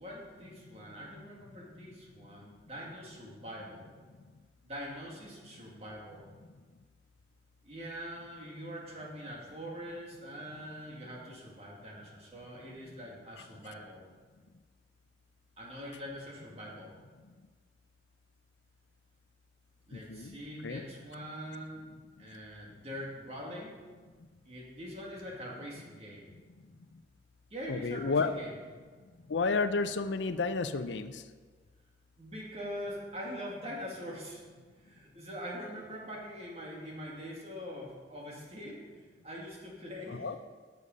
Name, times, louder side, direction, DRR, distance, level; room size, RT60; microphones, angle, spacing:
voice 1, 0.0-3.9 4.6-6.3 7.6-14.0 15.6-16.9 19.9-21.8 22.2-23.8 24.4-26.3 27.5-28.5 32.2-34.4 34.8-38.8 39.2-40.3, equal, 35° right, -3 dB, 2.2 m, -43 dB
voice 2, 19.9-20.4 20.6-20.8 27.7-28.3 29.3-31.2 40.1-40.4, left 4 dB, 90° left, 11 dB, 0.6 m, -31 dB
11.0 x 6.6 x 5.4 m, 1.5 s
head